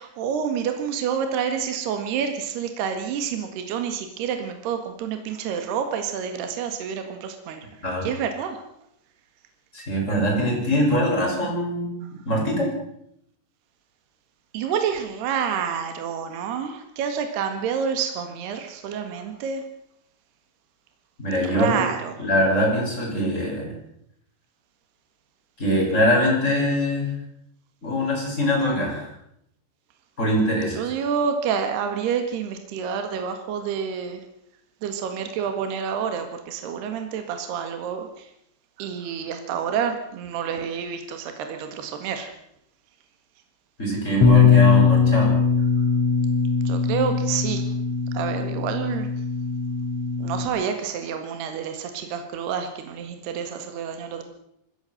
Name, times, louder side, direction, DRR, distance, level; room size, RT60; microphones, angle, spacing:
voice 1, 0.0-7.7 8.0-8.6 14.5-19.6 21.4-22.3 30.7-34.2 34.8-38.3 38.8-42.3 46.7-47.7 48.1-49.1 50.2-54.2, right 7 dB, 65° right, 6 dB, 3.7 m, -28 dB
voice 2, 9.7-12.0 12.3-12.7 21.2-21.8 22.2-23.7 25.6-27.1 27.8-29.1 30.2-30.9 43.8-45.3, equal, 15° left, -2 dB, 7.1 m, -23 dB
Bass guitar, 44.2-50.5, left 6 dB, 40° left, 4.4 m, -20 dB
20.5 x 16.5 x 7.8 m, 0.75 s
omnidirectional pair, 5.2 m